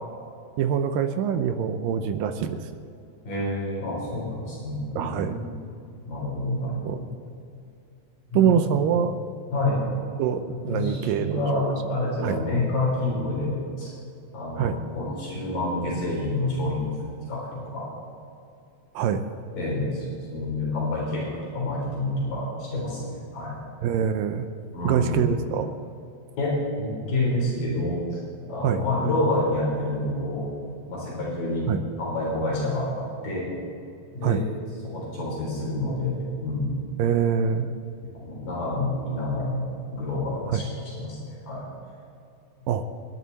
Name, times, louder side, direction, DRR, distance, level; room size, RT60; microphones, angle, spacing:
voice 1, 0.6-2.6 5.0-5.3 6.9-7.0 8.3-9.1 10.2-11.4 12.2-12.4 14.6-14.8 19.0-19.2 23.8-24.5 24.8-25.7 28.6-28.8 31.7-31.8 34.2-34.4 37.0-37.7 40.5-40.6 42.7-42.8, right 8 dB, 75° right, 8 dB, 2.3 m, -24 dB
voice 2, 3.2-5.5 6.1-7.0 8.3-8.5 9.5-9.8 10.7-13.9 14.3-16.9 17.3-17.9 19.5-23.6 24.7-25.3 26.4-28.2 28.5-30.5 30.9-31.7 32.0-33.5 34.1-34.4 34.8-36.8 38.2-41.6, left 1 dB, 60° left, -5 dB, 5.5 m, -28 dB
28.0 x 11.0 x 4.1 m, 2.5 s
omnidirectional pair, 4.2 m